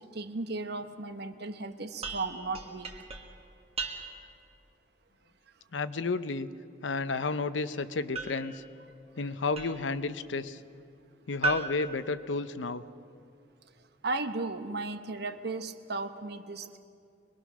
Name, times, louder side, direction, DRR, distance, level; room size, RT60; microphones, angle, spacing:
voice 1, 0.0-2.9 14.0-16.8, right 3 dB, 60° right, 9 dB, 1.1 m, -35 dB
sound 1, 2.0-4.4 8.1-10.0 11.4-12.9, right 4 dB, 35° right, 1.6 m, -38 dB
voice 2, 5.7-6.5 6.8-8.6 9.2-10.6 11.3-12.8, left 3 dB, 85° left, 12 dB, 0.8 m, -31 dB
24.5 x 21.0 x 6.2 m, 2.4 s
head